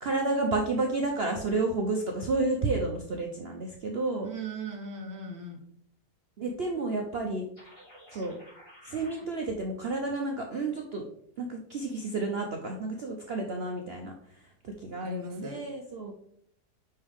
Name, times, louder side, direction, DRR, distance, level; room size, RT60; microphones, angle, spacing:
voice 1, 0.0-4.3 6.4-7.4 8.1-8.4 8.8-11.0 11.4-14.1 14.8-16.1, right 3 dB, 55° right, 2 dB, 0.7 m, -31 dB
voice 2, 4.2-5.6 15.0-15.7, right 2 dB, 20° right, 2 dB, 0.6 m, -39 dB
sound 1, 7.5-9.2, equal, 20° left, 2.9 m, -52 dB
5.6 x 5.5 x 3.5 m, 0.66 s
omnidirectional pair, 1.7 m